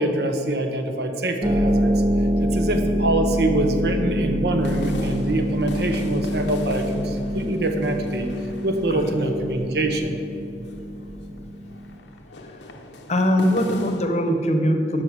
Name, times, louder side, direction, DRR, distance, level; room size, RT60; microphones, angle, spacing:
voice 1, 0.0-1.9 2.4-8.3 8.6-10.2, right 1 dB, 65° right, 5 dB, 1.0 m, -24 dB
Harp, 1.4-12.0, equal, 20° right, 0.5 m, -26 dB
sound 1, 1.6-14.0, left 1 dB, 85° left, 0.9 m, -40 dB
voice 2, 13.1-15.0, equal, 40° left, 5 dB, 0.9 m, -21 dB
11.5 x 5.6 x 6.4 m, 2.8 s
head